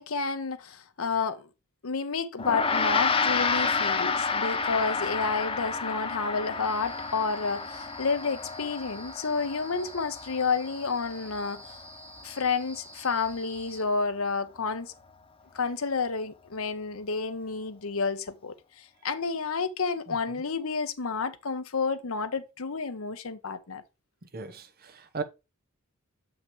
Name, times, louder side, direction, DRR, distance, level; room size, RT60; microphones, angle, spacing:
voice 1, 0.0-1.5 1.8-11.8 12.2-14.9 15.5-23.8, left 4 dB, 70° left, 0.9 m, -30 dB
Gong, 2.4-12.0, left 4 dB, 25° left, 0.7 m, -30 dB
sound 1, 6.6-13.8, right 1 dB, 15° right, 1.8 m, -49 dB
voice 2, 24.3-25.2, right 4 dB, 45° right, 0.9 m, -37 dB
6.8 x 5.8 x 3.1 m
head